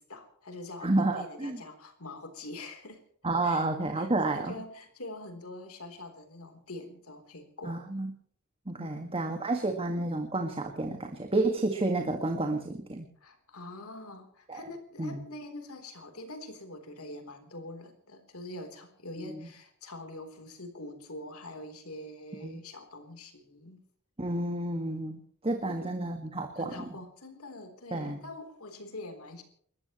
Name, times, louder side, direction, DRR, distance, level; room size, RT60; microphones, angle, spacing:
voice 1, 0.1-3.0 3.4-3.7 4.0-8.0 8.8-9.2 13.2-23.8 25.6-25.9 26.6-29.4, left 2 dB, 70° left, 7 dB, 3.7 m, -44 dB
voice 2, 0.8-1.6 3.2-4.6 7.6-8.1 8.7-13.1 14.5-14.6 15.0-15.2 19.2-19.4 22.4-22.6 24.2-26.7 27.9-28.2, right 2 dB, 25° right, 4 dB, 1.9 m, -30 dB
28.5 x 14.0 x 3.1 m, 0.63 s
head